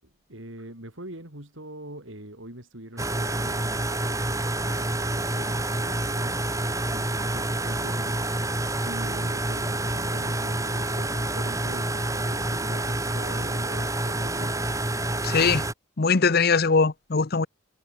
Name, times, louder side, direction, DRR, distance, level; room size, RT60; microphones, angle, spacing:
voice 1, 0.0-8.4 8.8-14.8, right 1 dB, 70° right, 7.5 m, -43 dB
sound 1, 3.0-15.7, right 2 dB, 15° right, 4.3 m, -28 dB
voice 2, 15.2-15.6 16.0-17.5, left 4 dB, 50° left, 0.8 m, -21 dB
head